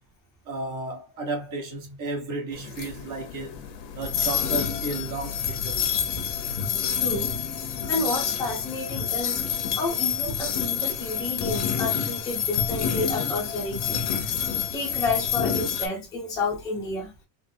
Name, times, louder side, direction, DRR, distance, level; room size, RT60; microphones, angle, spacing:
voice 1, 0.5-3.6 4.0-5.9, right 3 dB, 40° right, 1.2 m, -33 dB
sound 1, 2.5-15.9, left 8 dB, 80° left, 0.9 m, -28 dB
voice 2, 6.9-7.3 7.9-14.2 14.7-17.1, left 2 dB, 10° left, 0.6 m, -30 dB
3.7 x 2.1 x 2.6 m
cardioid pair, 180°, 46 cm